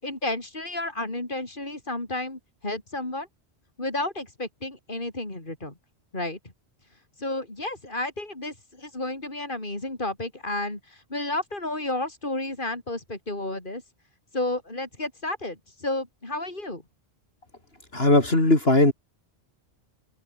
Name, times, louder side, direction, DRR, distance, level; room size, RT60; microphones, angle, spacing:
voice 1, 0.0-3.3 3.8-5.7 6.1-6.4 7.2-13.8 14.3-16.8, left 2 dB, 50° left, 5.4 m, -32 dB
voice 2, 17.9-18.9, left 2 dB, 65° left, 5.1 m, -18 dB
omnidirectional pair, 1.1 m